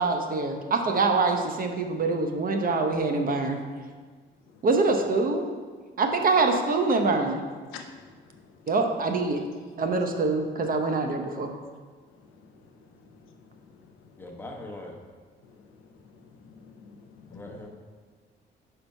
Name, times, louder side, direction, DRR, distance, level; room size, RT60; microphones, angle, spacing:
voice 1, 0.0-3.6 4.6-5.5 6.0-7.4 8.7-9.4 9.8-11.5, right 3 dB, 45° right, 5 dB, 0.7 m, -25 dB
voice 2, 7.7-8.4 13.0-13.1 13.7-13.8 15.4-15.9 16.4-17.6, left 6 dB, 90° left, 4 dB, 0.7 m, -48 dB
voice 3, 14.2-15.0 17.3-17.7, left 1 dB, 10° left, 0 dB, 1.0 m, -41 dB
4.9 x 4.5 x 5.4 m, 1.5 s
cardioid pair, 90°, 20 cm